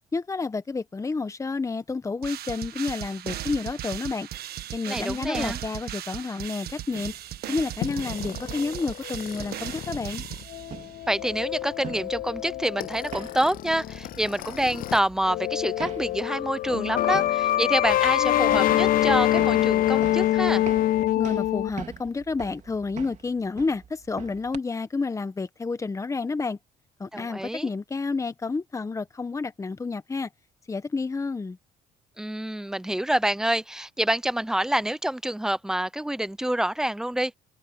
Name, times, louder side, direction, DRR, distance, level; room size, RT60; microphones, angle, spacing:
voice 1, 0.1-4.3 4.7-7.1 7.5-10.2 21.2-26.6 27.0-30.3 30.7-31.6, left 4 dB, 20° left, 1.1 m, -30 dB
sound 1, 2.2-11.0, right 12 dB, 65° right, 1.6 m, -37 dB
voice 2, 4.9-5.6 11.1-20.6 27.1-27.7 32.2-37.3, right 1 dB, 5° right, 0.6 m, -27 dB
sound 2, 6.8-24.6, right 8 dB, 45° right, 3.5 m, -45 dB
sound 3, 7.8-15.0 15.3-21.7, left 14 dB, 55° left, 0.5 m, -26 dB
cardioid pair, 110°, 17 cm